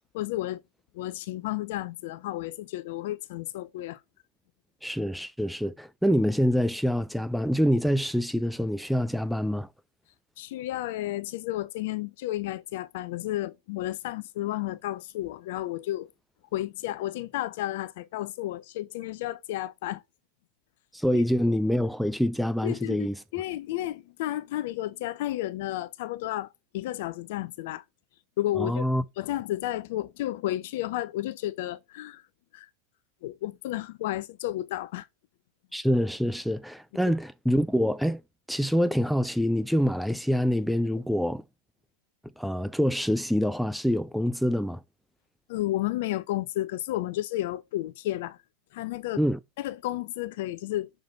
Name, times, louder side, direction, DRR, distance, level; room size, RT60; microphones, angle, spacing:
voice 1, 0.1-0.6 0.9-4.0 10.4-16.1 16.5-20.0 21.1-21.2 22.6-27.8 28.4-28.9 29.2-32.2 32.5-32.7 33.2-35.1 45.5-48.4 48.7-49.2 49.6-50.9, left 15 dB, 50° left, 0.6 m, -32 dB
voice 2, 4.8-9.7 20.9-23.2 28.6-29.0 35.7-38.2 38.5-41.4 42.4-44.8 49.2-49.4, equal, ahead, 0.3 m, -26 dB
6.7 x 3.8 x 4.0 m
figure-of-eight pair, 90°, 0 cm